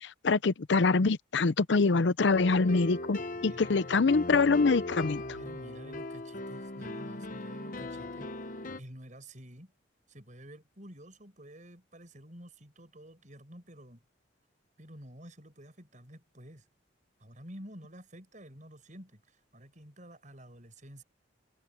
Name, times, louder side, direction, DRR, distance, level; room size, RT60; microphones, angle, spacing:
voice 1, 0.0-5.2, left 4 dB, 65° left, 0.6 m, -25 dB
sound 1, 2.3-8.8, left 2 dB, 45° left, 0.9 m, -39 dB
voice 2, 3.3-3.6 5.3-8.3 8.8-9.7 10.1-14.0 14.8-16.6 17.2-21.0, equal, 40° right, 7.0 m, -50 dB
head